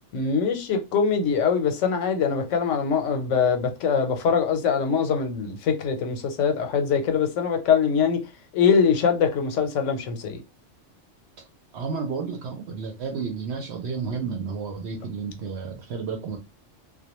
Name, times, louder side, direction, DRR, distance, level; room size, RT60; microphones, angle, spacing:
voice 1, 0.1-8.2 8.5-10.4, left 6 dB, 85° left, 1.0 m, -23 dB
voice 2, 11.7-16.4, right 5 dB, 70° right, 0.8 m, -31 dB
2.2 x 2.1 x 2.8 m
omnidirectional pair, 1.2 m